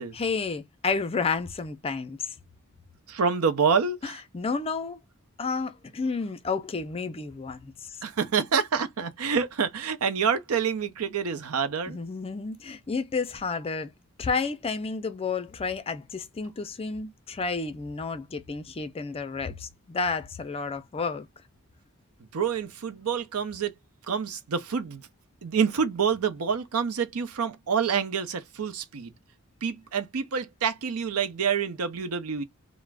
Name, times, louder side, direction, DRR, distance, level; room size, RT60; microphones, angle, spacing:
voice 1, 0.2-2.3 4.0-5.0 5.4-8.0 11.9-13.9 14.2-21.3, left 4 dB, 25° left, 0.4 m, -31 dB
voice 2, 3.1-4.2 8.0-12.0 22.3-23.7 24.1-25.1 25.4-29.1 29.6-32.4, right 6 dB, 80° right, 0.6 m, -27 dB
2.4 x 2.0 x 3.2 m
head